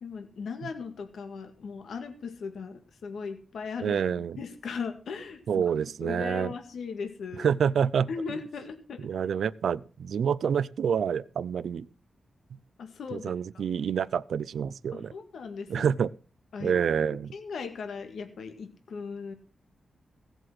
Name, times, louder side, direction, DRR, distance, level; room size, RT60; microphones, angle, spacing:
voice 1, 0.0-5.6 6.0-7.5 8.1-9.1 12.8-13.6 14.9-15.9 16.5-16.8 17.1-19.3, left 5 dB, 80° left, 7 dB, 2.0 m, -38 dB
voice 2, 3.8-4.4 5.5-6.5 7.4-8.1 9.0-11.9 13.1-15.1 15.7-16.1 16.6-17.3, right 7 dB, 75° right, 17 dB, 0.6 m, -27 dB
17.5 x 7.9 x 6.1 m, 0.38 s
wide cardioid pair, 155°, 0 cm